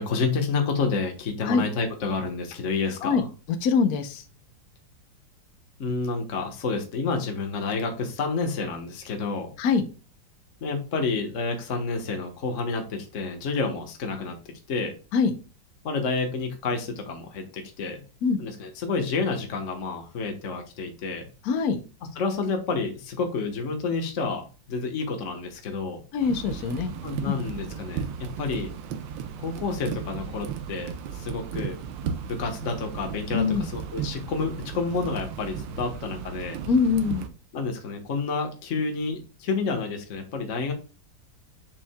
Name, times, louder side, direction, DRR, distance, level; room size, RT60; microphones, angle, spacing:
voice 1, 0.0-3.3 5.8-9.5 10.6-14.4 14.7-14.9 15.8-18.0 18.4-21.3 22.1-26.0 27.0-28.7 29.4-31.8 32.3-36.6 37.5-40.7, left 4 dB, 45° left, 4 dB, 1.4 m, -29 dB
voice 2, 3.6-4.2 9.6-9.8 15.1-15.3 18.2-18.4 21.4-21.8 26.1-26.9 27.2-27.4 33.3-33.7 36.7-37.3, left 5 dB, 60° left, 8 dB, 1.2 m, -23 dB
sound 1, 26.2-37.3, right 7 dB, 85° right, 1.6 m, -35 dB
7.2 x 6.4 x 2.2 m, 0.34 s
omnidirectional pair, 2.0 m